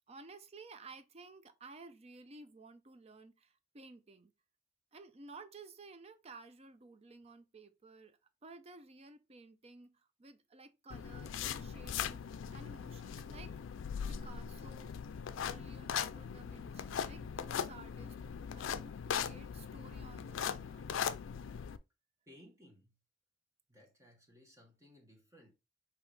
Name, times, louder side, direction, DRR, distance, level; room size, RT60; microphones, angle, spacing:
voice 1, 0.1-4.3 4.9-12.2 12.5-21.0, right 3 dB, 35° right, 0.5 m, -55 dB
sound 1, 10.9-21.8, left 7 dB, 80° left, 0.4 m, -40 dB
voice 2, 22.3-23.0 23.7-25.5, left 1 dB, 15° right, 1.1 m, -60 dB
5.5 x 2.9 x 3.3 m
head